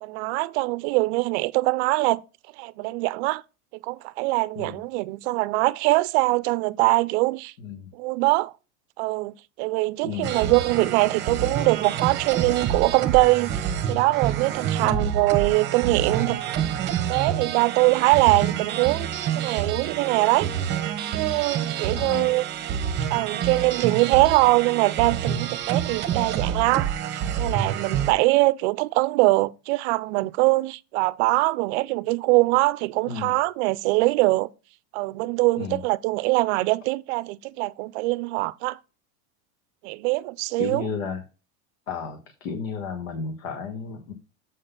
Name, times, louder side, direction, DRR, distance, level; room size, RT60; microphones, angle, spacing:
voice 1, 0.0-2.2 2.6-3.4 3.8-7.5 7.9-8.5 9.0-13.5 13.9-16.4 17.1-19.1 19.3-20.5 21.1-22.4 23.1-34.5 34.9-38.8 39.8-40.9, right 22 dB, 60° right, 0.5 m, -22 dB
voice 2, 7.6-7.9 10.0-10.3 14.8-15.1 21.9-22.3 33.1-33.3 35.6-35.8 40.6-41.2 41.9-44.1, left 5 dB, 90° left, 1.5 m, -33 dB
sound 1, 10.2-28.1, right 9 dB, 30° right, 0.9 m, -28 dB
7.5 x 4.0 x 5.2 m
supercardioid pair, 155°, 39 cm